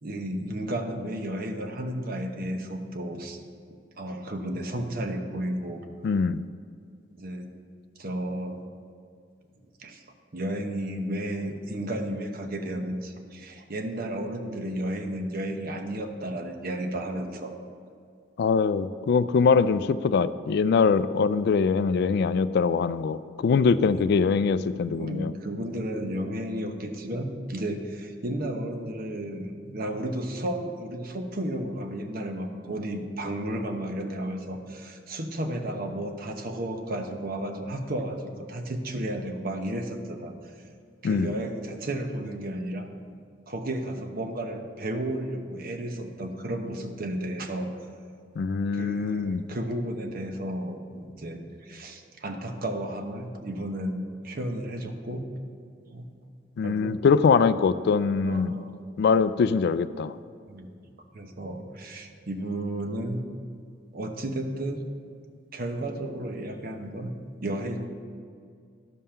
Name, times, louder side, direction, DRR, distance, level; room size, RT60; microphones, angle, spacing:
voice 1, 0.0-3.4 4.0-5.8 7.1-7.5 8.0-8.6 9.8-10.0 10.3-17.5 23.9-24.0 24.9-40.3 41.0-42.9 43.5-47.7 48.7-55.3 55.8-56.1 56.6-57.0 58.2-58.8 60.5-60.7 61.1-63.2 63.9-64.8 65.5-67.1 67.4-67.8, right 1 dB, 55° right, 5 dB, 0.9 m, -33 dB
voice 2, 6.0-6.4 18.4-25.3 41.0-41.3 48.4-49.4 56.6-58.5 59.0-60.1, left 5 dB, 60° left, 15 dB, 0.3 m, -23 dB
12.0 x 5.5 x 5.6 m, 2.3 s
head